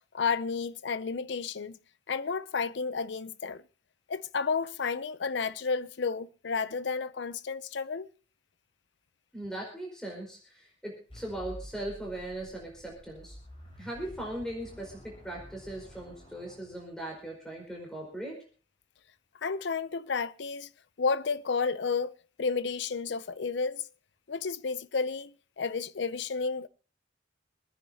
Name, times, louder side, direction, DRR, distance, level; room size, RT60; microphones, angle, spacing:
voice 1, 0.0-1.8 2.1-3.6 4.1-8.1 19.4-20.7 21.0-22.1 22.4-23.9 24.3-26.7, left 5 dB, 65° left, 0.5 m, -31 dB
voice 2, 9.3-13.3 13.8-18.4, right 1 dB, 5° left, 4.7 m, -39 dB
sound 1, 11.1-17.3, equal, 30° left, 4.9 m, -50 dB
26.5 x 10.0 x 2.8 m
head